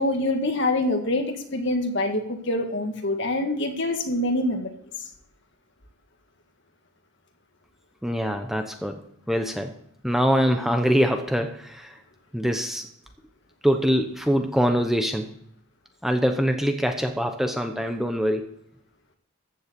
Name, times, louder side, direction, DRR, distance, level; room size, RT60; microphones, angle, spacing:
voice 1, 0.0-4.7, left 1 dB, 55° left, 4 dB, 1.8 m, -25 dB
voice 2, 8.0-9.0 9.3-9.7 10.0-12.0 12.3-12.8 13.6-15.3 16.0-18.5, equal, ahead, 5 dB, 0.8 m, -24 dB
15.0 x 7.1 x 6.8 m, 0.72 s
head